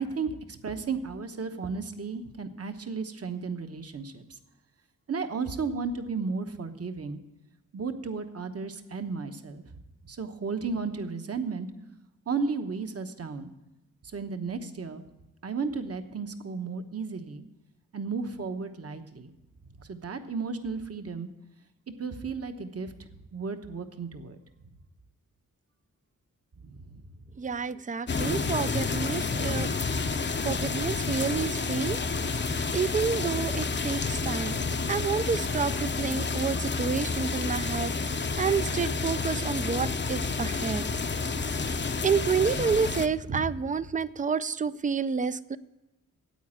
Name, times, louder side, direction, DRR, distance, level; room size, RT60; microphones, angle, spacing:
voice 1, 0.0-4.4 5.1-7.2 7.7-9.8 10.0-11.7 12.3-13.5 14.0-15.0 15.4-17.4 17.9-19.3 19.8-21.3 22.0-22.9 23.3-24.4 26.6-26.9 42.7-42.8 43.3-43.5, right 4 dB, 45° right, 8 dB, 1.1 m, -34 dB
voice 2, 27.4-29.7 30.4-32.0 32.7-34.6 34.9-40.8 41.4-41.7 42.0-45.6, right 6 dB, 25° right, 16 dB, 0.4 m, -29 dB
sound 1, 28.1-43.1, left 4 dB, 35° left, 0.7 m, -30 dB
9.4 x 8.6 x 8.7 m, 1.0 s
wide cardioid pair, 90°, 33 cm